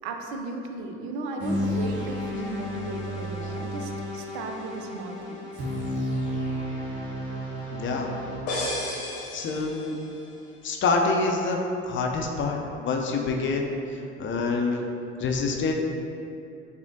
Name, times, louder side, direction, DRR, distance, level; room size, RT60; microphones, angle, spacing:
voice 1, 0.0-5.7, right 3 dB, 80° right, 3 dB, 0.5 m, -35 dB
sound 1, 1.4-8.4, equal, 35° right, 1.4 m, -32 dB
voice 2, 7.7-8.1 9.3-10.0 10.6-14.8 15.2-15.7, left 3 dB, 35° left, 1 dB, 0.5 m, -26 dB
sound 2, 8.5-10.3, left 1 dB, 85° left, 1.0 m, -32 dB
5.7 x 2.1 x 2.6 m, 2.7 s
hypercardioid pair, 65°, 33 cm